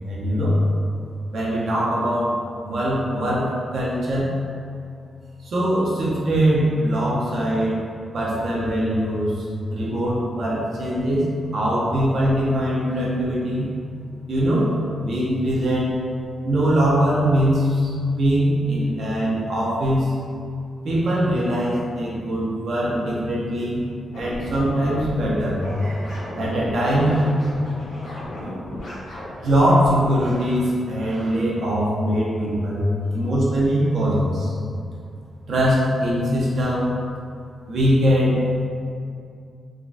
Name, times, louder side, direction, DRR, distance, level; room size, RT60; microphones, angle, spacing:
voice 1, 0.1-0.6 1.3-4.3 5.4-7.8 8.1-13.7 14.3-15.9 16.4-20.1 20.8-23.8 24.2-27.3 28.4-28.6 29.4-32.9 33.1-34.5 35.5-36.9 37.7-38.5, equal, 70° right, -5 dB, 0.7 m, -22 dB
sound 1, 24.1-30.0, left 1 dB, 85° left, 1.1 m, -34 dB
3.6 x 2.3 x 2.5 m, 2.3 s
cardioid pair, 95°, 0 cm